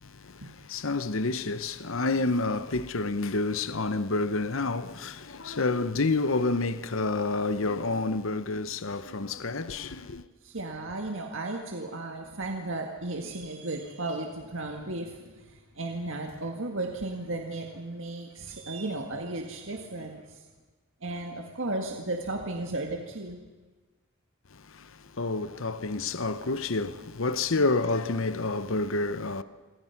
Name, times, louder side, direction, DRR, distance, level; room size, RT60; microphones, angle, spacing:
voice 1, 0.0-10.2 24.5-29.4, left 3 dB, 65° left, 0.9 m, -29 dB
voice 2, 10.4-20.4 21.0-23.4 27.6-27.7, right 2 dB, 60° right, 1.9 m, -35 dB
28.0 x 24.5 x 5.9 m
head